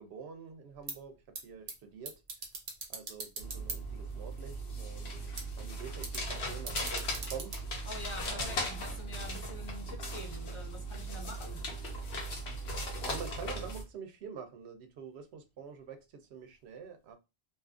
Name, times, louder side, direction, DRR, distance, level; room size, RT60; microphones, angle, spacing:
voice 1, 0.0-2.2 2.9-7.5 8.3-8.7 13.0-17.2, right 6 dB, 90° right, 0.8 m, -46 dB
sound 1, 0.7-8.5, right 4 dB, 45° right, 0.6 m, -45 dB
sound 2, 3.4-13.8, right 1 dB, 75° left, 1.0 m, -38 dB
voice 2, 7.8-11.6, left 1 dB, 35° left, 0.7 m, -45 dB
2.6 x 2.4 x 2.4 m
omnidirectional pair, 1.1 m